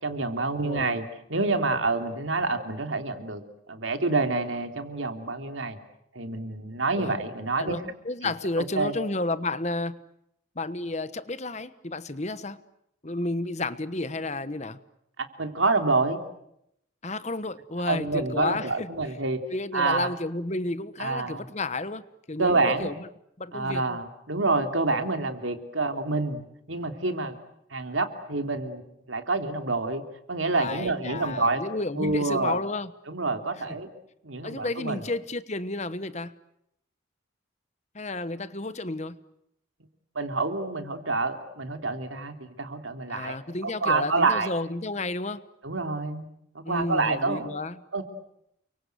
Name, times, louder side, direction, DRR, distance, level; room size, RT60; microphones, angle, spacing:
voice 1, 0.0-3.4 3.7-5.8 6.1-7.9 8.2-8.3 8.6-9.0 15.2-16.2 17.9-19.4 19.7-20.1 21.0-21.5 22.4-22.9 23.5-27.4 27.7-28.8 29.1-30.0 30.3-31.6 32.0-32.6 33.1-33.9 34.2-35.1 40.1-43.3 43.6-44.5 45.6-46.3 46.5-47.5 47.9-48.0, right 3 dB, 75° right, 6 dB, 3.2 m, -27 dB
voice 2, 0.6-1.0 7.0-7.1 7.6-10.0 10.6-12.6 13.0-14.8 17.0-18.9 19.5-22.0 22.3-22.9 23.4-24.0 30.5-32.9 34.4-36.3 37.9-39.1 43.1-45.4 46.6-47.8, left 2 dB, 35° left, 14 dB, 1.2 m, -31 dB
30.0 x 24.0 x 8.1 m, 0.78 s
head